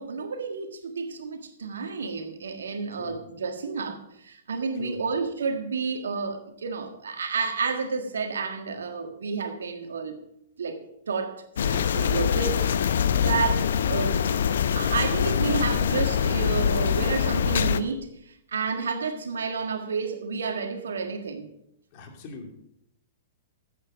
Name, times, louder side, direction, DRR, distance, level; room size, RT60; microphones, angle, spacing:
voice 1, 0.0-10.2 10.6-12.7 13.2-14.2 14.7-21.5, right 5 dB, 75° right, 1.6 m, -30 dB
sound 1, 11.6-17.8, left 8 dB, 70° left, 0.7 m, -24 dB
voice 2, 13.1-13.4 21.9-22.5, left 5 dB, 45° left, 2.6 m, -41 dB
13.5 x 8.3 x 5.1 m
hypercardioid pair, 115°, 0 cm